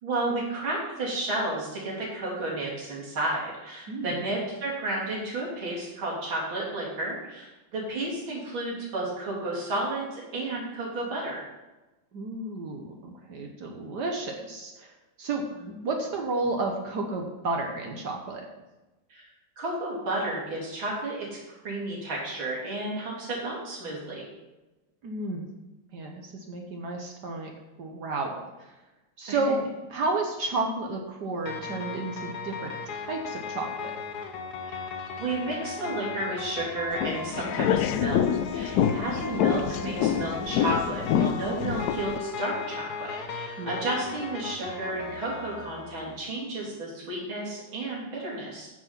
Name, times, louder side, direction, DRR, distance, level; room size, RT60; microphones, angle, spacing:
voice 1, 0.0-11.4 19.1-19.3 19.6-24.2 29.3-29.4 34.6-34.8 35.2-38.3 38.5-48.7, right 2 dB, 85° right, -5 dB, 3.8 m, -32 dB
voice 2, 3.9-4.2 12.1-14.9 15.2-18.4 25.0-25.4 25.9-27.5 27.8-28.3 28.6-28.7 29.2-29.6 29.9-33.9 38.8-39.0 43.6-43.8, right 3 dB, 60° right, 1 dB, 1.6 m, -32 dB
sound 1, 31.4-46.2, left 5 dB, 60° left, 1.4 m, -37 dB
sound 2, 36.9-42.2, left 9 dB, 75° left, 0.9 m, -26 dB
9.4 x 6.5 x 5.8 m, 1.1 s
omnidirectional pair, 2.1 m